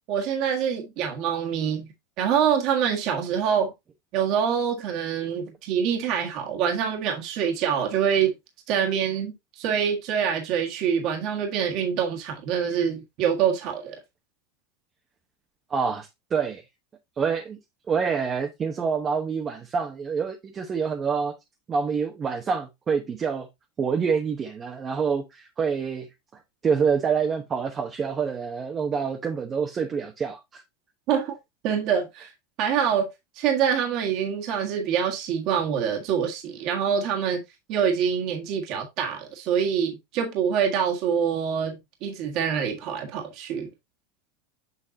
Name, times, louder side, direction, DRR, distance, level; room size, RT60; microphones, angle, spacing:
voice 1, 0.1-1.9 2.2-3.7 4.1-8.3 8.7-14.0 31.1-31.4 31.6-32.3 32.6-33.1 33.4-37.4 37.7-43.7, right 8 dB, 50° right, 1.6 m, -25 dB
voice 2, 15.7-16.6 17.2-17.6 17.9-21.3 21.7-23.5 23.8-26.1 26.3-30.6, right 6 dB, 25° right, 0.9 m, -27 dB
6.7 x 5.7 x 2.7 m
supercardioid pair, 130°, 0 cm